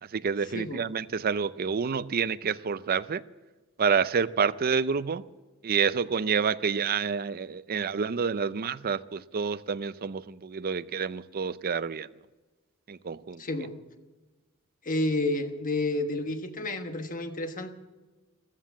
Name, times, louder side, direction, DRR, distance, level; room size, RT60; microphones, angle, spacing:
voice 1, 0.0-3.2 3.8-5.2 5.6-12.1 12.9-13.4, right 6 dB, 45° right, 15 dB, 0.5 m, -28 dB
voice 2, 13.4-13.7 14.8-17.7, left 2 dB, 40° left, 7 dB, 1.3 m, -30 dB
15.0 x 13.0 x 7.2 m, 1.2 s
head